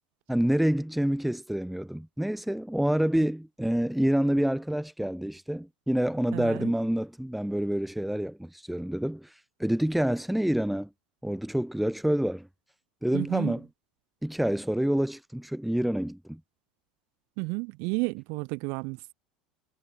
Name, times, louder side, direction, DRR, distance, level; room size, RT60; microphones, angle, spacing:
voice 1, 0.3-9.3 9.6-10.9 11.2-12.5 13.0-13.7 14.2-16.4, equal, ahead, 0.7 m, -27 dB
voice 2, 6.3-6.7 13.1-13.5 17.4-19.1, right 32 dB, 55° right, 0.5 m, -32 dB
figure-of-eight pair, 75°, 5 cm